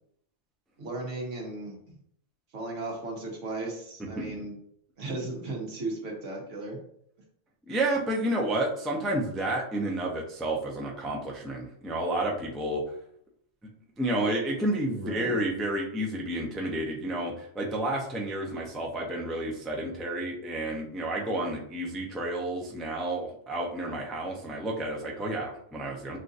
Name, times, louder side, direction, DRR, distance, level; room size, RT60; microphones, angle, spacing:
voice 1, 0.8-1.8 2.5-4.6 5.0-6.8 14.9-15.4, right 2 dB, 80° right, 0 dB, 1.4 m, -36 dB
voice 2, 7.7-12.8 14.0-26.2, right 1 dB, ahead, -2 dB, 0.3 m, -30 dB
6.2 x 2.6 x 2.5 m, 0.69 s
omnidirectional pair, 1.3 m